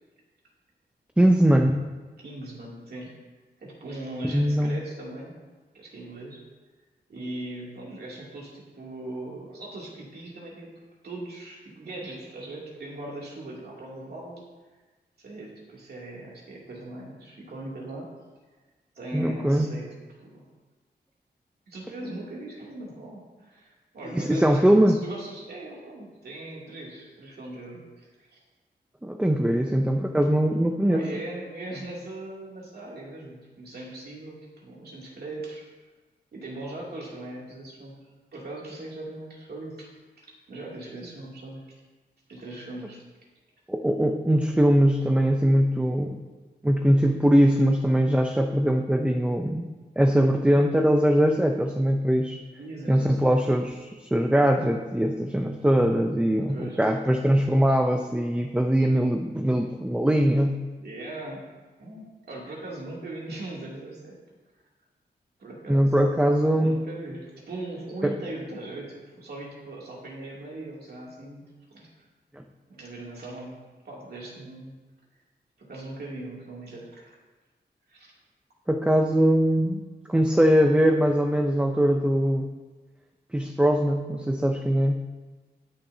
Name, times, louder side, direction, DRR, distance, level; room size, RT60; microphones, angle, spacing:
voice 1, 1.2-1.9 4.3-4.8 19.1-19.7 24.1-25.0 29.0-31.0 43.7-46.2 46.6-49.7 50.0-52.4 52.9-60.5 65.7-66.8 68.0-68.1 72.3-72.4 78.7-82.5 83.3-85.0, equal, 5° right, 4 dB, 0.5 m, -21 dB
voice 2, 2.2-3.1 3.6-5.3 5.7-6.4 7.1-10.7 11.0-14.4 15.2-18.1 18.9-19.9 20.2-20.4 21.7-24.6 24.9-28.4 30.9-35.7 36.3-37.9 38.3-39.9 40.5-41.7 42.3-43.0 52.6-53.4 56.5-56.8 60.8-61.4 61.8-64.2 65.4-65.9 66.5-71.9 72.7-73.6 73.8-74.8 75.6-77.2 77.9-78.1, right 2 dB, 70° right, -4 dB, 2.6 m, -39 dB
18.5 x 7.1 x 2.7 m, 1.3 s
wide cardioid pair, 135°, 17 cm